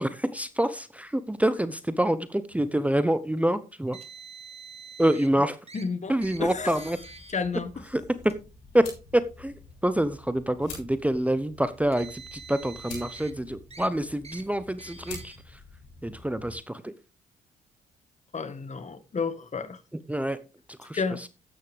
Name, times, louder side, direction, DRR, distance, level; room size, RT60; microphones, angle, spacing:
voice 1, 0.0-4.0 5.0-5.6 6.1-7.0 7.9-8.0 8.7-8.9 9.1-9.5 9.8-15.3 16.0-16.9 20.1-20.4 20.8-21.0, right 1 dB, 5° right, 0.9 m, -26 dB
Car, 3.9-5.3 5.7-5.8 6.2-6.4 6.8-7.3 8.2-8.3 9.3-9.4 11.7-13.3 13.7-13.9 14.2-14.4 14.8-15.4, right 5 dB, 35° right, 2.4 m, -45 dB
voice 2, 5.7-6.9 7.3-7.8 18.3-19.8 20.9-21.2, left 5 dB, 40° left, 1.7 m, -31 dB
sound 1, 6.2-16.6, left 3 dB, 80° left, 7.7 m, -48 dB
13.5 x 9.6 x 3.4 m
hypercardioid pair, 50°, 18 cm